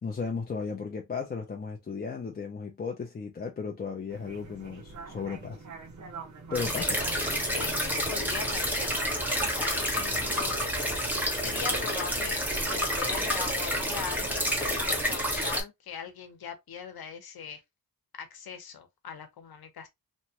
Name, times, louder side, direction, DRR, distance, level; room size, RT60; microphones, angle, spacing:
voice 1, 0.0-5.6 6.5-6.9, left 5 dB, 25° left, 0.5 m, -35 dB
Landing sounds and Taxi messages, 4.1-15.0, right 4 dB, 50° right, 0.9 m, -45 dB
sound 1, 6.5-15.6, equal, 5° right, 1.0 m, -29 dB
voice 2, 7.5-9.0 9.4-10.6 11.3-12.4 12.7-17.6 18.2-19.9, left 7 dB, 80° left, 0.9 m, -40 dB
3.1 x 2.2 x 2.7 m
wide cardioid pair, 135°, 36 cm